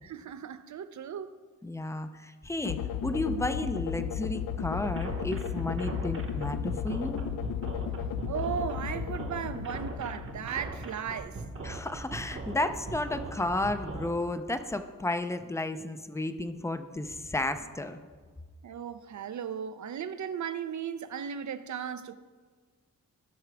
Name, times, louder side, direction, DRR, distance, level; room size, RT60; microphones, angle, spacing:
voice 1, 0.0-1.3 8.3-11.4 18.6-22.1, right 8 dB, 60° right, 0.5 m, -36 dB
voice 2, 1.6-7.3 11.6-18.0, left 2 dB, 10° left, 0.4 m, -32 dB
sound 1, 2.6-10.8, left 8 dB, 70° left, 0.5 m, -34 dB
sound 2, 4.8-14.1, right 2 dB, 40° right, 1.0 m, -40 dB
17.0 x 5.8 x 3.4 m
wide cardioid pair, 140°, 34 cm